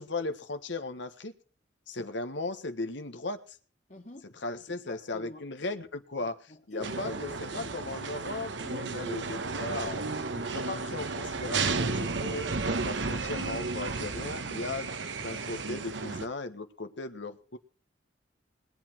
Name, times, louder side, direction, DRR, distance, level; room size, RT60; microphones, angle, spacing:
voice 1, 0.0-1.3 1.9-3.6 4.4-6.4 6.7-10.0 10.3-12.5 12.8-14.9 15.2-17.6, left 2 dB, 80° left, 1.4 m, -37 dB
voice 2, 3.9-4.3 4.7-5.5 6.2-7.9 8.7-8.8, left 1 dB, 40° left, 2.4 m, -46 dB
sound 1, 6.8-16.3, right 4 dB, 85° right, 1.2 m, -33 dB
21.0 x 8.5 x 4.5 m
head